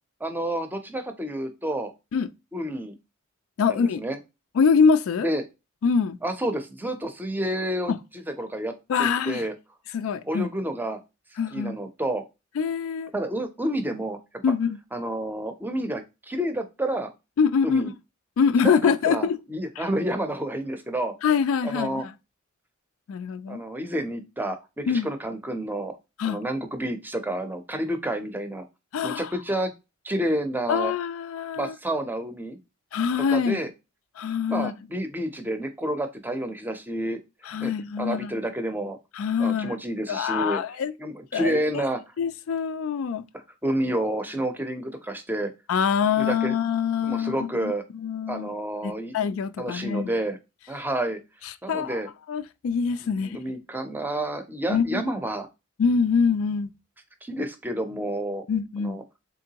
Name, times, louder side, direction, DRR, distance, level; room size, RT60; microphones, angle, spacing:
voice 1, 0.2-1.9 2.5-2.9 3.6-4.2 5.2-5.4 6.2-8.7 9.0-9.5 10.2-11.0 11.5-12.2 13.1-14.2 14.9-17.1 17.6-17.9 18.6-21.1 21.6-22.0 23.5-25.9 26.2-28.6 29.0-29.7 30.0-30.9 31.6-32.6 33.3-33.7 34.5-37.2 37.6-39.0 39.4-40.6 41.0-42.0 43.6-45.5 46.2-46.5 47.0-47.8 48.3-49.1 49.6-50.4 50.7-51.2 51.6-52.1 53.0-55.5 57.2-58.4 58.8-59.0, right 1 dB, 10° right, 0.6 m, -29 dB
voice 2, 3.6-4.0 4.6-5.3 5.8-6.2 8.9-9.5 9.9-10.5 11.4-11.8 12.6-13.1 14.4-14.8 17.4-17.9 18.4-19.4 19.8-19.9 21.2-22.1 23.1-23.6 24.9-25.1 26.2-26.4 28.9-29.3 30.7-31.8 32.9-33.6 34.2-34.7 37.4-38.3 39.1-39.7 40.1-40.9 41.3-41.6 42.2-43.2 45.7-48.5 48.8-50.1 51.4-52.0 52.3-53.4 54.7-55.0 55.8-56.7 58.5-59.0, left 6 dB, 70° left, 0.3 m, -24 dB
3.7 x 3.4 x 2.8 m
head